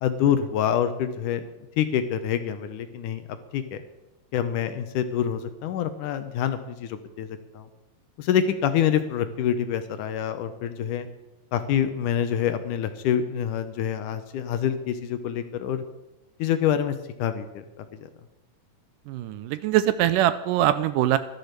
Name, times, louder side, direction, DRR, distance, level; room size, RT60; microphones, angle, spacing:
voice 1, 0.0-1.4 1.8-3.8 4.3-7.7 8.2-11.1 11.5-15.8 16.4-17.6 17.9-18.1, left 9 dB, 75° left, 10 dB, 2.1 m, -26 dB
voice 2, 19.1-21.2, right 12 dB, 80° right, 13 dB, 2.0 m, -22 dB
13.5 x 11.5 x 6.6 m, 0.98 s
omnidirectional pair, 4.1 m